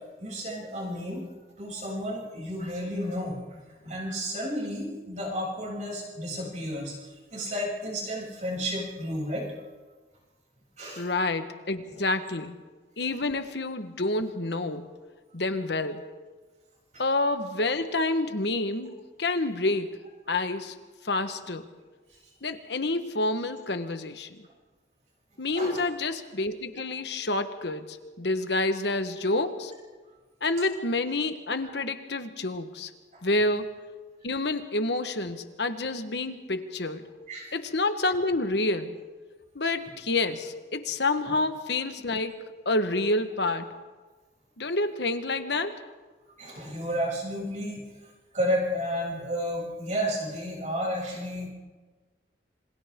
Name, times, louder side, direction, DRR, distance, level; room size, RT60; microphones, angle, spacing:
voice 1, 0.2-1.2 1.6-6.9 7.3-9.5 10.8-11.1 16.9-17.0 25.6-25.8 31.6-31.8 37.3-37.5 41.3-41.4 46.4-47.8 48.3-51.5, equal, 40° right, -3 dB, 7.7 m, -32 dB
voice 2, 11.0-12.6 13.0-14.9 15.3-16.1 17.0-18.9 19.2-20.7 21.0-21.7 22.4-24.4 25.4-29.7 30.4-32.9 33.2-33.7 34.2-37.1 37.5-39.0 39.5-42.4 42.6-43.7 44.6-45.8, left 2 dB, 75° left, 9 dB, 1.4 m, -28 dB
27.0 x 26.0 x 3.8 m, 1.3 s
head